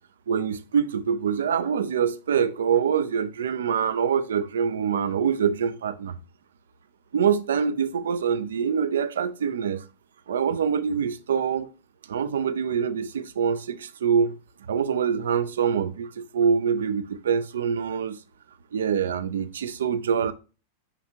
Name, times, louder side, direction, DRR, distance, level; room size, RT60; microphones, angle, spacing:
voice 1, 0.3-6.2 7.1-9.8 10.3-11.7 12.1-14.3 14.7-18.2 18.7-20.3, right 7 dB, 65° right, 0.5 m, -25 dB
9.8 x 3.4 x 2.9 m
figure-of-eight pair, 90°, 0 cm